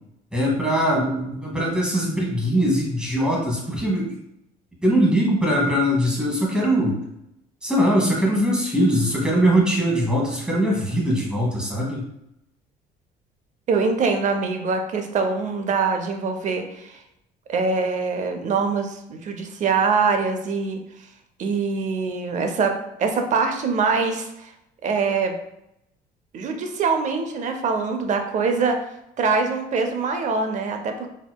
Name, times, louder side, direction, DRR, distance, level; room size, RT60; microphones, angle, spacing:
voice 1, 0.3-4.2 4.8-7.0 7.6-12.0, equal, 5° right, -2 dB, 1.1 m, -21 dB
voice 2, 13.7-17.0 17.5-20.8 21.4-24.5 24.8-25.4 26.3-28.9 29.2-31.1, right 4 dB, 45° right, 5 dB, 0.6 m, -23 dB
4.3 x 2.8 x 2.2 m, 0.81 s
cardioid pair, 110°, 17 cm